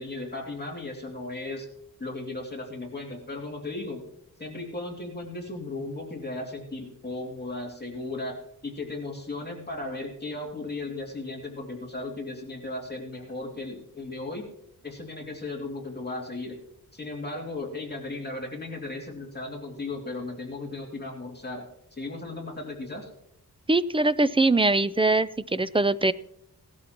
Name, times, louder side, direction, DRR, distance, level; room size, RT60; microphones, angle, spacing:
voice 1, 0.0-1.7 2.0-4.0 4.4-8.4 8.6-14.5 14.8-16.6 16.9-23.1, left 2 dB, 25° left, 0 dB, 2.6 m, -36 dB
voice 2, 23.7-26.1, right 2 dB, 15° right, 16 dB, 0.4 m, -22 dB
18.5 x 12.5 x 3.0 m, 0.75 s
wide cardioid pair, 115°, 39 cm